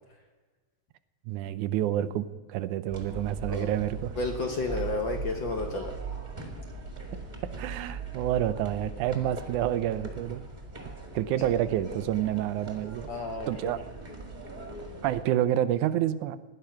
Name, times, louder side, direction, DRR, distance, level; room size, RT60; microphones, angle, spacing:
voice 1, 1.3-4.2 7.4-10.4 11.1-13.1 13.5-13.8 15.0-16.4, right 12 dB, 90° right, 14 dB, 2.2 m, -28 dB
sound 1, 2.9-15.2, right 3 dB, 15° right, 1.8 m, -40 dB
voice 2, 4.2-6.0 13.1-13.5, left 3 dB, 55° left, 4 dB, 1.4 m, -31 dB
17.0 x 11.0 x 5.7 m, 1.3 s
omnidirectional pair, 3.4 m